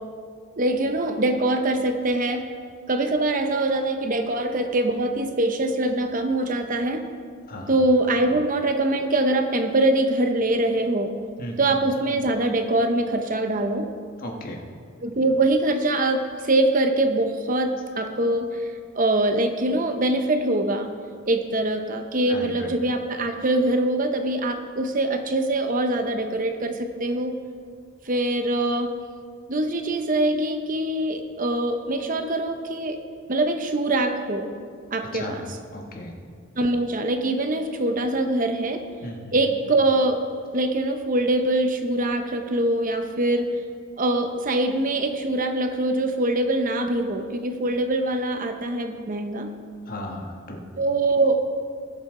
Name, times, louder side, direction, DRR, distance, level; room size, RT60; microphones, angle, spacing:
voice 1, 0.6-2.4 2.9-7.0 7.7-11.1 11.6-13.9 15.0-20.9 21.3-27.3 28.1-28.9 29.5-33.0 33.3-34.5 34.9-35.4 36.6-38.9 39.3-40.2 40.5-43.5 44.0-49.5 50.8-51.4, right 2 dB, 40° right, 6 dB, 0.8 m, -23 dB
voice 2, 7.5-7.8 8.3-8.4 11.4-11.7 14.2-14.6 22.3-22.7 35.1-35.4 35.7-36.2 39.0-39.5 49.9-50.6, left 1 dB, 45° left, 1 dB, 1.4 m, -36 dB
19.5 x 7.9 x 3.8 m, 2.1 s
head